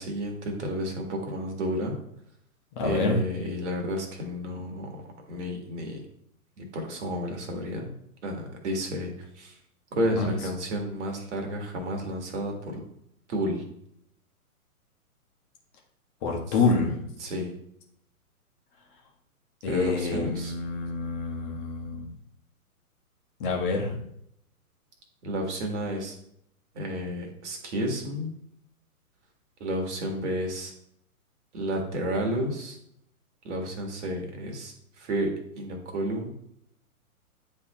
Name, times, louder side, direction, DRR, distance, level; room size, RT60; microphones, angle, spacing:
voice 1, 0.0-2.0 2.8-5.0 5.3-6.0 6.6-7.9 8.2-9.6 9.9-12.8 13.3-13.6 17.2-17.5 19.7-20.5 25.2-26.2 26.7-28.3 29.6-30.7 31.5-32.8 33.4-36.3, equal, 50° right, 2 dB, 1.7 m, -31 dB
voice 2, 2.8-3.2 10.1-10.5 16.2-17.1 19.6-22.1 23.4-24.0, left 3 dB, 35° left, -1 dB, 1.3 m, -27 dB
9.5 x 3.5 x 3.0 m, 0.73 s
figure-of-eight pair, 120°, 44 cm